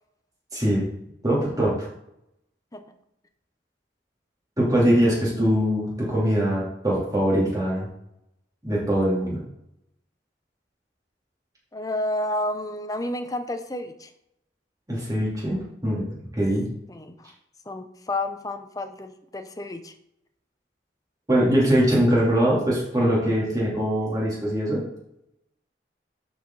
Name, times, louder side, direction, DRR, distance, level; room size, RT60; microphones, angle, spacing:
voice 1, 0.5-0.8 1.2-1.9 4.6-7.9 8.6-9.4 14.9-16.7 21.3-24.8, equal, 20° right, -5 dB, 3.2 m, -22 dB
voice 2, 11.7-14.1 16.9-17.3 17.7-19.9, left 1 dB, 20° left, 8 dB, 0.7 m, -30 dB
11.5 x 4.8 x 4.0 m, 0.80 s
head